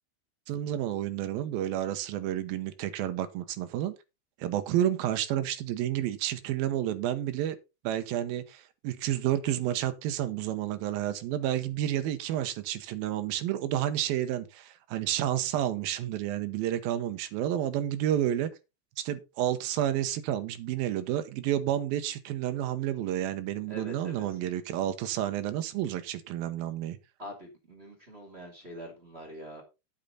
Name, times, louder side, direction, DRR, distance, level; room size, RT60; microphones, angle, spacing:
voice 1, 0.5-3.9 4.4-7.6 7.8-18.5 19.0-27.0, right 12 dB, 75° right, 2.3 m, -30 dB
voice 2, 23.7-24.4 27.2-29.6, equal, 20° right, 1.8 m, -44 dB
9.1 x 8.7 x 4.0 m
omnidirectional pair, 5.1 m